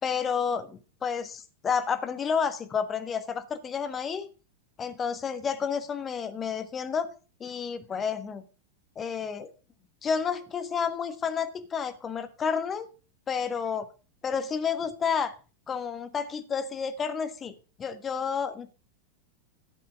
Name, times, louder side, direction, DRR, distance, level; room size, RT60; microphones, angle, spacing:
voice 1, 0.0-4.3 4.8-7.1 7.4-8.4 8.9-9.5 10.0-12.9 13.3-13.9 14.2-15.3 15.7-18.7, left 6 dB, 20° left, 10 dB, 1.4 m, -30 dB
12.5 x 7.7 x 4.9 m, 0.34 s
figure-of-eight pair, 90°, 0 cm